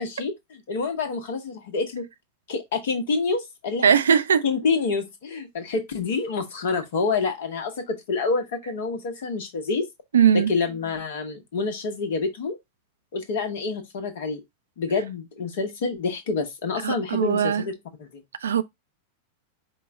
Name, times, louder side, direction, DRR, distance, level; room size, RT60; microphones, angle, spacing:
voice 1, 0.0-2.0 2.5-3.9 4.4-9.8 10.3-12.6 13.1-14.4 14.8-18.2, left 4 dB, 55° left, 1.1 m, -27 dB
voice 2, 3.8-4.4 10.1-10.5 16.8-17.6 18.4-18.6, right 8 dB, 65° right, 0.4 m, -19 dB
5.0 x 2.3 x 3.8 m
figure-of-eight pair, 90°, 0 cm